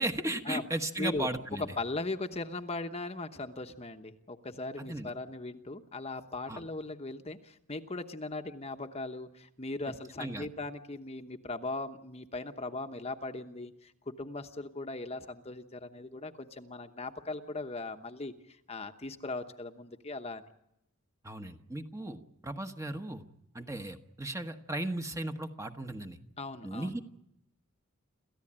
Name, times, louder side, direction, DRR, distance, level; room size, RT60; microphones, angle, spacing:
voice 1, 0.0-1.7 4.8-5.1 6.5-6.6 10.2-10.5 21.2-23.2 23.5-26.2 26.6-27.0, right 1 dB, 15° right, 6 dB, 1.2 m, -36 dB
voice 2, 1.6-20.5 26.4-26.9, left 2 dB, 30° left, 6 dB, 1.0 m, -39 dB
28.0 x 14.5 x 8.8 m, 0.83 s
head